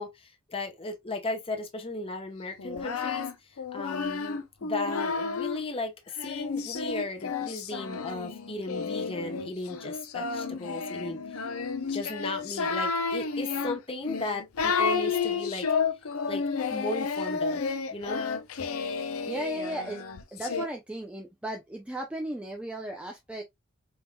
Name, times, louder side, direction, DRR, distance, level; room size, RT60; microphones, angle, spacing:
voice 1, 0.0-3.3 3.7-11.5 11.9-15.7 16.3-16.4 16.7-17.6 17.9-18.2, left 2 dB, 25° left, 0.9 m, -36 dB
Singing, 2.6-5.6 6.2-20.7, left 5 dB, 90° left, 0.6 m, -31 dB
voice 2, 19.3-20.0 20.3-23.4, right 1 dB, 5° right, 0.5 m, -35 dB
4.5 x 3.6 x 2.2 m
head